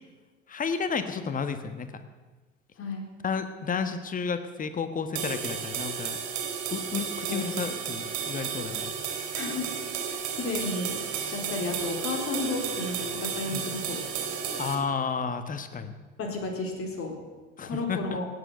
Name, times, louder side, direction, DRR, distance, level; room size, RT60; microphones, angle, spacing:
voice 1, 0.5-2.0 3.2-6.2 6.7-8.9 13.5-13.7 14.6-16.0 17.6-18.2, left 5 dB, 20° left, 10 dB, 1.3 m, -32 dB
sound 1, 5.1-14.8, right 7 dB, 50° right, 3.1 m, -33 dB
voice 2, 9.3-9.7 10.0-14.0 16.2-17.1 17.6-18.3, left 3 dB, 35° left, 3 dB, 4.0 m, -33 dB
17.5 x 8.2 x 8.0 m, 1.3 s
hypercardioid pair, 75°, 36 cm